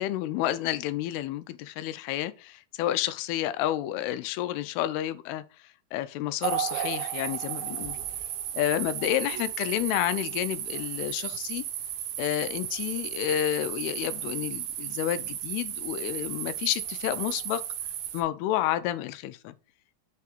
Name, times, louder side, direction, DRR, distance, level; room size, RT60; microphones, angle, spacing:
voice 1, 0.0-5.4 5.9-8.0 8.5-11.6 12.2-17.6 18.1-19.6, left 13 dB, 90° left, 2.6 m, -30 dB
sound 1, 6.4-18.2, right 10 dB, 75° right, 2.4 m, -34 dB
6.6 x 3.6 x 4.2 m
omnidirectional pair, 4.5 m